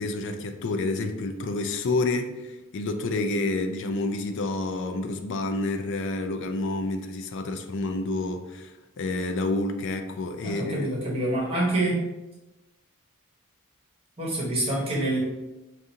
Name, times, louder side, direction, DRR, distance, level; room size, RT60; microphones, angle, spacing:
voice 1, 0.0-8.7 9.0-10.9, left 2 dB, 55° left, 6 dB, 0.4 m, -29 dB
voice 2, 10.4-12.1 14.2-15.2, right 1 dB, 25° right, -6 dB, 1.1 m, -26 dB
4.6 x 2.5 x 2.7 m, 1.0 s
head